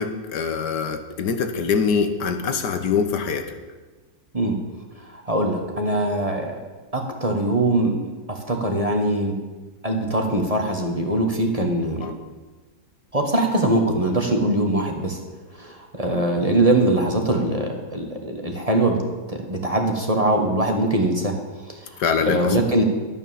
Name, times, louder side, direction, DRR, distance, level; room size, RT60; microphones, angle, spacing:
voice 1, 0.0-3.5 12.0-12.1 22.0-22.6, left 6 dB, 85° left, 7 dB, 1.7 m, -24 dB
voice 2, 5.3-6.6 6.9-9.3 9.8-12.1 13.1-15.2 15.6-19.0 19.3-21.3 21.7-21.8 22.2-22.8, right 1 dB, 20° right, 2 dB, 1.5 m, -22 dB
12.5 x 9.1 x 7.2 m, 1.2 s
omnidirectional pair, 1.8 m